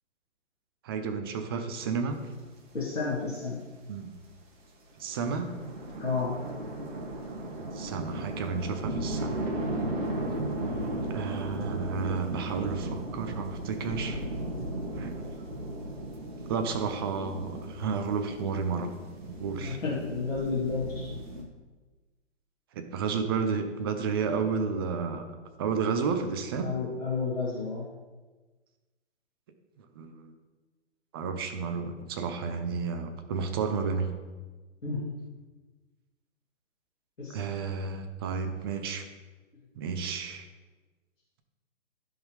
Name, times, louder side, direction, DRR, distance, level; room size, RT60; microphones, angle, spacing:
voice 1, 0.8-2.2 3.9-4.1 5.0-5.5 7.6-9.3 11.1-14.2 15.0-15.1 16.5-19.0 19.3-19.8 22.7-25.3 25.6-26.7 30.0-30.3 31.1-34.1 37.3-39.0 39.8-40.5, right 5 dB, 20° right, 7 dB, 0.6 m, -31 dB
sound 1, 2.2-2.3 2.6-2.7 4.2-4.3 5.1-21.4, right 1 dB, 40° right, 2.0 m, -36 dB
voice 2, 2.7-3.6 6.0-6.4 19.5-21.1 26.6-27.9 34.8-35.1 37.2-37.4, left 4 dB, 85° left, -7 dB, 2.7 m, -31 dB
14.5 x 5.5 x 3.2 m, 1.3 s
figure-of-eight pair, 130°, 37 cm